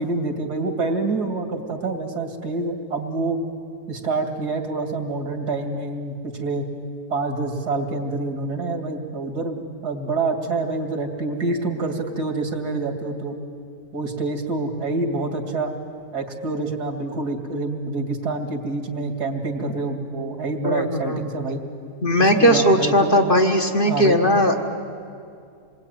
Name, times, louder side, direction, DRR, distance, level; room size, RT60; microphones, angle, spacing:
voice 1, 0.0-3.4 3.9-6.7 7.1-13.4 13.9-15.7 16.1-21.6 22.2-23.2 23.9-24.2, right 3 dB, 75° right, 5 dB, 2.9 m, -27 dB
voice 2, 20.6-21.2 22.0-24.6, equal, 35° left, 3 dB, 1.5 m, -18 dB
27.5 x 22.0 x 9.2 m, 2.4 s
omnidirectional pair, 1.7 m